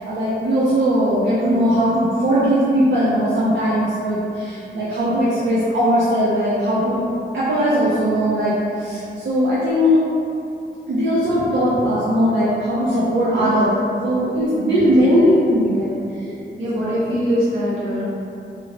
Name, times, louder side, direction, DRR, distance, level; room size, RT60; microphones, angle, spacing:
voice 1, 0.0-7.0 7.3-10.0 10.9-13.7 14.0-15.9 16.8-17.1, equal, 65° right, -10 dB, 0.6 m, -19 dB
voice 2, 14.7-15.3 15.6-15.7 16.6-18.0, equal, 85° right, -12 dB, 1.3 m, -23 dB
2.9 x 2.7 x 2.8 m, 2.6 s
wide cardioid pair, 120°, 20 cm